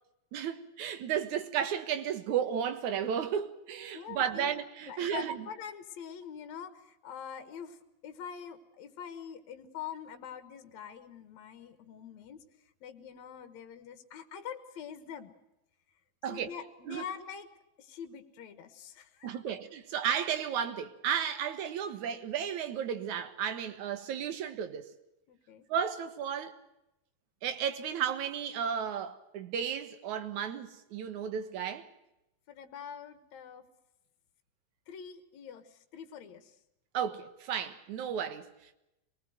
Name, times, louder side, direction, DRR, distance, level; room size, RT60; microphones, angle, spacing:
voice 1, 0.3-5.5 16.2-16.5 16.9-17.0 19.2-24.9 25.7-26.6 27.4-31.9 36.9-38.5, right 8 dB, 75° right, 2.9 m, -33 dB
voice 2, 3.9-4.5 4.9-12.4 12.8-15.3 16.3-17.5 17.8-19.5 25.3-25.7 32.5-33.7 34.9-36.6, left 8 dB, 70° left, 2.6 m, -44 dB
24.5 x 19.5 x 7.9 m
omnidirectional pair, 3.4 m